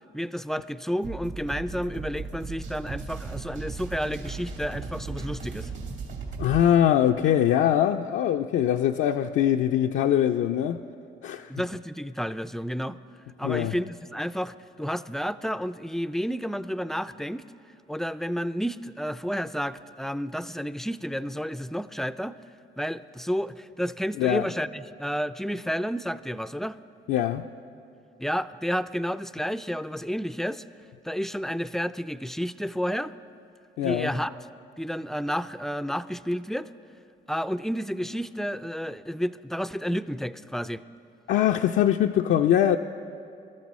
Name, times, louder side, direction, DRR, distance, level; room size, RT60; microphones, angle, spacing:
voice 1, 0.1-5.7 11.5-13.0 13.4-17.4 17.9-22.4 22.8-26.8 28.2-30.6 31.0-33.1 33.8-34.3 34.8-36.7 37.3-40.8, equal, ahead, 13 dB, 0.3 m, -31 dB
sound 1, 1.0-6.6, right 4 dB, 70° right, 2.9 m, -36 dB
voice 2, 6.4-10.8 11.2-11.5 13.4-13.7 24.2-24.5 27.1-27.4 33.8-34.1 41.3-42.8, left 10 dB, 75° left, 4 dB, 0.4 m, -22 dB
22.5 x 13.5 x 4.1 m, 2.7 s
cardioid pair, 90°, 20 cm